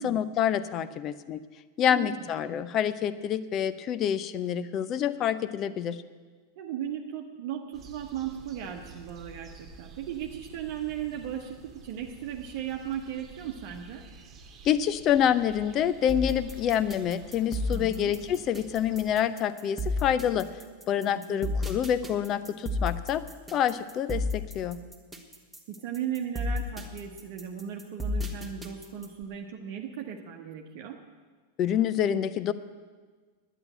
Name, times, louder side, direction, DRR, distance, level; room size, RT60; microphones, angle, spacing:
voice 1, 0.0-1.4 1.8-6.0 14.6-20.5 20.9-23.2 23.5-24.8 31.6-32.5, left 9 dB, 35° left, 15 dB, 0.6 m, -27 dB
voice 2, 1.8-2.3 6.6-14.1 17.7-18.2 21.0-21.5 25.7-31.0, right 9 dB, 50° right, 2 dB, 1.0 m, -37 dB
sound 1, 7.7-19.2, right 4 dB, 25° right, 1.6 m, -50 dB
sound 2, 16.1-29.2, left 2 dB, 5° right, 1.6 m, -33 dB
11.0 x 9.1 x 9.0 m, 1.5 s
figure-of-eight pair, 90°, 0 cm